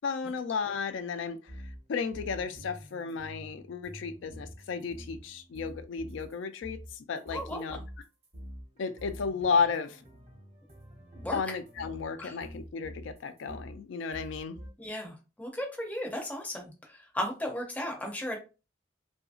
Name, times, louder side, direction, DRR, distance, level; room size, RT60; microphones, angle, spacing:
voice 1, 0.0-1.4 1.9-7.8 8.8-10.0 11.3-14.6, left 5 dB, 80° left, 0.3 m, -33 dB
sound 1, 1.5-6.3 6.6-13.8 14.1-14.7, equal, 35° right, 0.7 m, -47 dB
voice 2, 7.3-7.8 11.2-11.4 12.2-12.4 14.8-18.4, equal, 10° left, 0.5 m, -36 dB
2.7 x 2.6 x 2.4 m
head